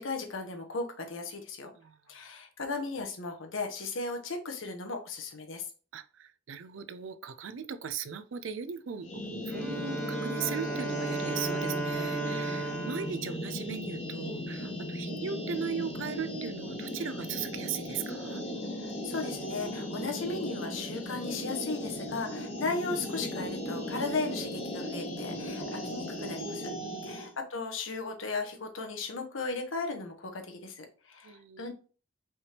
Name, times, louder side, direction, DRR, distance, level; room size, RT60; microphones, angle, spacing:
voice 1, 0.0-1.7 2.1-5.6 19.0-26.7 27.0-31.7, left 3 dB, 80° left, 1.0 m, -36 dB
voice 2, 5.9-18.4 26.8-27.1 31.2-31.7, right 6 dB, 75° right, 0.5 m, -38 dB
sound 1, 9.0-27.3, left 1 dB, 30° left, 1.4 m, -37 dB
Bowed string instrument, 9.5-14.3, right 3 dB, 5° left, 0.7 m, -35 dB
5.3 x 3.4 x 2.9 m
head